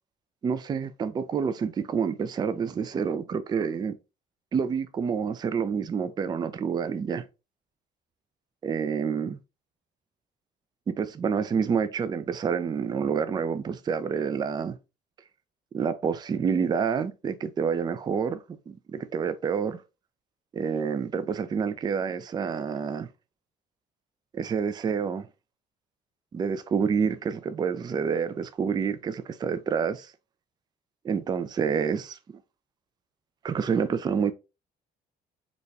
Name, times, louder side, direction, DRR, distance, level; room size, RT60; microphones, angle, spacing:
voice 1, 0.4-4.0 4.5-7.2 8.6-9.4 10.9-14.8 15.7-19.8 20.5-23.1 24.3-25.3 26.3-30.1 31.0-32.2 33.4-34.3, right 6 dB, 25° right, 0.3 m, -28 dB
4.0 x 2.3 x 3.2 m
cardioid pair, 110°, 17 cm